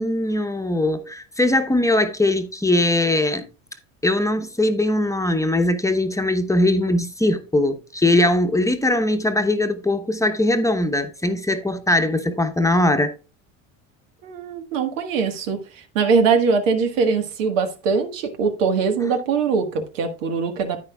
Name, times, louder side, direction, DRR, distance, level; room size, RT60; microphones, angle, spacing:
voice 1, 0.0-3.5 4.0-13.1, left 1 dB, 10° left, 0.9 m, -20 dB
voice 2, 14.2-20.8, right 5 dB, 85° right, 1.6 m, -22 dB
9.8 x 9.0 x 2.3 m
supercardioid pair, 90°, 38 cm